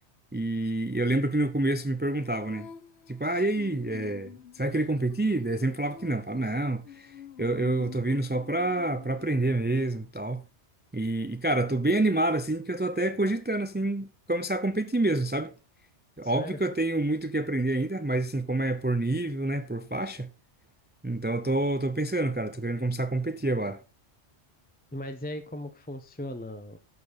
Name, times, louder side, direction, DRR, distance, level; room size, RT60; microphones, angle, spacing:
voice 1, 0.3-2.7 3.1-10.4 10.9-15.5 16.2-20.3 21.0-23.8, right 2 dB, 15° right, 0.5 m, -28 dB
Female singing, 2.1-9.8, left 8 dB, 70° left, 1.1 m, -48 dB
voice 2, 16.2-16.6 24.9-26.8, left 1 dB, 10° left, 0.8 m, -37 dB
12.5 x 6.9 x 4.1 m
omnidirectional pair, 1.2 m